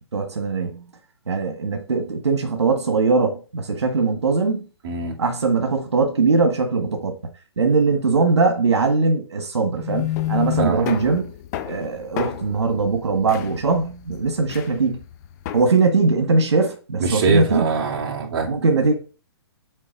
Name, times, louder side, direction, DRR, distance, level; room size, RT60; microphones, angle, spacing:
voice 1, 0.1-0.8 1.3-4.6 5.2-7.2 7.6-11.2 11.6-15.0 15.5-17.6 18.5-18.9, right 4 dB, 90° right, 1.7 m, -20 dB
voice 2, 4.8-5.1 10.6-10.8 17.0-18.5, right 5 dB, 50° right, 2.3 m, -23 dB
sound 1, 9.7-15.6, left 13 dB, 40° left, 0.8 m, -30 dB
7.5 x 4.1 x 5.3 m
hypercardioid pair, 140°, 14 cm